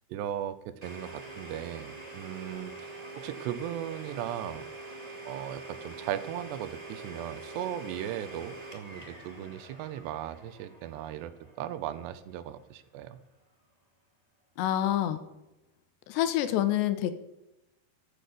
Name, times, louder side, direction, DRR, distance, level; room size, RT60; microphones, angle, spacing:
voice 1, 0.1-4.7 5.3-11.3 11.6-13.2, right 11 dB, 85° right, 13 dB, 3.0 m, -37 dB
Domestic sounds home sounds, 0.8-12.5, right 2 dB, 25° right, 0.8 m, -45 dB
voice 2, 14.6-15.2 16.1-17.1, left 12 dB, 85° left, 11 dB, 3.3 m, -27 dB
14.5 x 8.4 x 7.0 m, 0.94 s
omnidirectional pair, 4.8 m